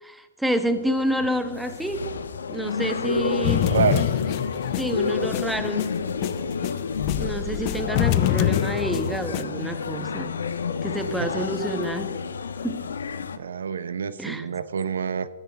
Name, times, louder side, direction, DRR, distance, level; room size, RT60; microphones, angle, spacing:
voice 1, 0.0-2.1 2.5-3.7 4.8-5.9 7.1-10.4 10.8-12.1 12.6-12.9 14.2-14.5, right 1 dB, 5° right, 8 dB, 1.2 m, -28 dB
sound 1, 0.6-13.4, left 5 dB, 90° left, 1.1 m, -30 dB
sound 2, 3.4-7.2 7.5-9.4, left 14 dB, 40° left, 0.5 m, -25 dB
voice 2, 3.6-4.1 11.2-11.5 13.4-15.3, right 6 dB, 85° right, 15 dB, 0.8 m, -27 dB
sound 3, 6.9-9.5, left 8 dB, 65° left, 2.9 m, -34 dB
21.0 x 14.0 x 3.4 m, 1.2 s
hypercardioid pair, 135°, 0 cm